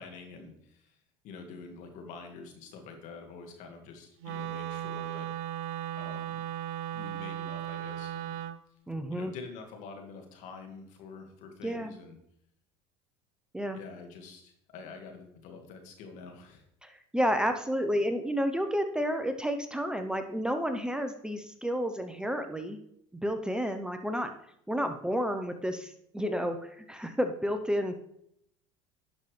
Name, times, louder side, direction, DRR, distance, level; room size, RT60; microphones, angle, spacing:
voice 1, 0.0-5.3 6.0-6.4 6.9-8.4 9.1-12.2 13.7-16.6, left 4 dB, 65° left, 4 dB, 2.0 m, -46 dB
Wind instrument woodwind instrument, 4.2-8.6, right 12 dB, 75° right, 0.6 m, -36 dB
voice 2, 8.9-9.3 11.6-11.9 13.5-13.8 16.8-22.8 23.1-24.3 24.7-27.9, equal, 5° right, 7 dB, 0.8 m, -31 dB
11.5 x 5.7 x 3.3 m, 0.72 s
hypercardioid pair, 85°, 14 cm